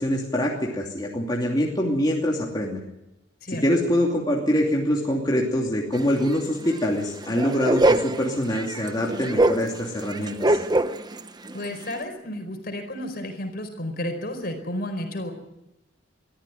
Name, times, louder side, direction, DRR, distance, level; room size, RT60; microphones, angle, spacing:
voice 1, 0.0-2.8 3.5-10.6, equal, 20° left, -2 dB, 2.8 m, -24 dB
voice 2, 3.4-3.8 11.5-15.3, left 1 dB, 50° left, 6 dB, 4.8 m, -32 dB
sound 1, 5.9-6.0 6.3-6.4 6.6-6.8 7.0-11.2 11.5-12.0, right 1 dB, 20° right, 0.9 m, -23 dB
23.5 x 14.0 x 9.3 m, 0.90 s
head